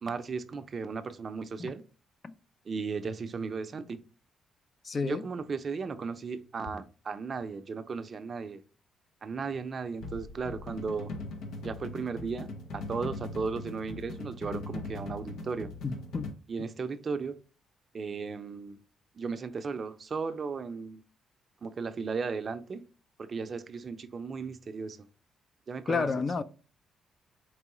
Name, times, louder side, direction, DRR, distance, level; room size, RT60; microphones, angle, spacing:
voice 1, 0.0-1.8 2.7-4.0 5.0-8.6 9.2-11.1 11.6-15.7 16.5-17.4 17.9-18.8 19.2-21.0 21.6-22.8 23.2-25.0 25.7-26.1, right 5 dB, 45° right, 0.5 m, -35 dB
voice 2, 4.8-5.2 15.8-16.3 25.9-26.4, left 4 dB, 40° left, 0.4 m, -30 dB
sound 1, 10.0-16.3, left 2 dB, 80° left, 0.7 m, -40 dB
4.6 x 3.0 x 3.0 m
cardioid pair, 90°, 0 cm